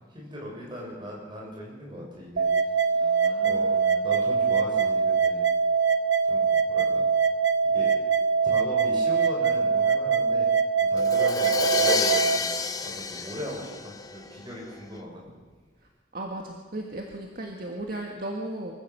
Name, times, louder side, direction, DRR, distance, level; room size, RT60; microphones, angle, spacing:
voice 1, 0.1-2.5 2.9-3.1 3.4-3.7 4.0-5.4 6.2-7.0 7.6-7.9 8.4-10.5 10.9-12.5 12.8-15.2, left 1 dB, 25° right, -2 dB, 6.5 m, -39 dB
sound 1, 2.4-12.4, right 5 dB, 70° right, 1.1 m, -23 dB
voice 2, 3.0-4.1 16.1-18.7, right 1 dB, 50° right, 1 dB, 1.8 m, -36 dB
Crash cymbal, 11.0-14.7, left 4 dB, 20° left, 0.9 m, -29 dB
24.5 x 15.5 x 7.2 m, 1.4 s
head